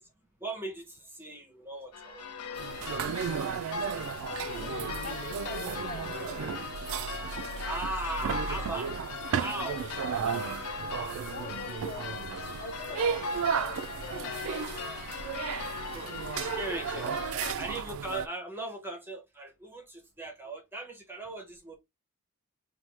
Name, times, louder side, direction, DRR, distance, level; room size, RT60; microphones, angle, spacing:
voice 1, 0.4-2.8 3.4-4.0 7.6-8.9 9.4-9.9 13.1-13.2 15.9-16.1 16.4-17.1 17.6-21.8, right 1 dB, 10° right, 0.6 m, -39 dB
sound 1, 1.9-17.5, left 5 dB, 85° left, 0.5 m, -39 dB
sound 2, 2.5-18.3, right 7 dB, 65° right, 0.3 m, -34 dB
voice 2, 4.3-6.9 11.3-12.2 12.6-15.1 15.9-16.0 16.4-17.5, left 2 dB, 35° left, 0.6 m, -44 dB
3.0 x 2.2 x 3.1 m
head